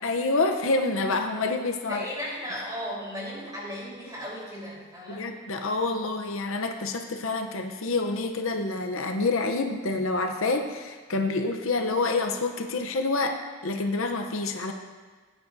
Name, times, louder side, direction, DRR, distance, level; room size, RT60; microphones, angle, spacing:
voice 1, 0.0-2.0 5.1-13.4 13.6-14.7, left 3 dB, 65° left, 4 dB, 0.7 m, -27 dB
voice 2, 1.9-5.3, equal, 15° right, -6 dB, 3.8 m, -36 dB
17.0 x 9.6 x 2.6 m, 1.4 s
head